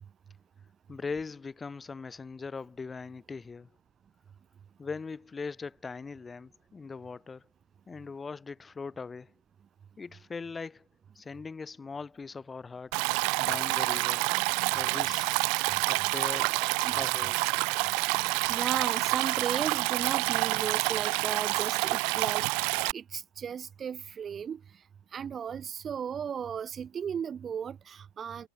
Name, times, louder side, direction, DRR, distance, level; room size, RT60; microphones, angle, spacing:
voice 1, 0.9-3.7 4.8-7.4 7.9-9.3 10.0-10.8 11.2-12.9 13.4-14.3 14.7-15.4 15.9-16.6 16.9-17.6, left 4 dB, 15° left, 4.1 m, -40 dB
Stream, 12.9-22.9, right 36 dB, 45° right, 1.3 m, -28 dB
voice 2, 18.5-24.6 25.1-28.5, right 7 dB, 20° right, 4.1 m, -35 dB
figure-of-eight pair, 90°, 0 cm